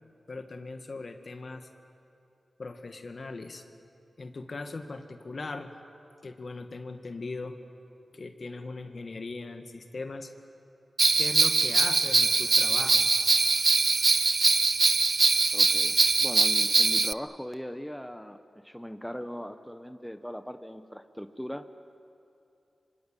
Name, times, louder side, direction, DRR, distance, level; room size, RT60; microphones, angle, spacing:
voice 1, 0.3-1.7 2.6-3.6 4.2-5.7 6.2-7.6 8.1-10.3 11.2-13.1, left 3 dB, 60° left, 7 dB, 2.0 m, -39 dB
Bell, 11.0-17.1, right 3 dB, 55° right, 0.5 m, -22 dB
voice 2, 15.5-21.7, equal, 5° left, 9 dB, 1.2 m, -39 dB
25.0 x 24.5 x 9.2 m, 2.7 s
cardioid pair, 45°, 0 cm